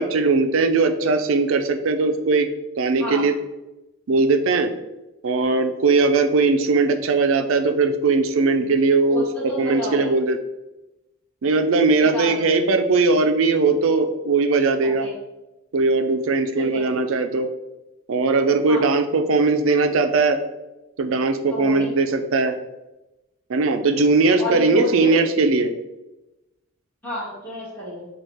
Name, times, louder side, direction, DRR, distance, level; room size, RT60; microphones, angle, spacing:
voice 1, 0.0-2.5 2.8-3.3 4.1-4.7 5.2-10.4 11.4-15.1 15.7-17.5 18.1-20.4 21.0-22.5 23.5-25.7, right 3 dB, 75° right, 8 dB, 0.4 m, -19 dB
voice 2, 9.1-10.1 11.9-12.3 14.8-15.1 16.5-16.8 18.7-18.9 21.5-21.9 24.4-25.1 27.0-28.1, left 2 dB, 10° left, -8 dB, 1.5 m, -29 dB
6.3 x 2.4 x 3.4 m, 1.0 s
head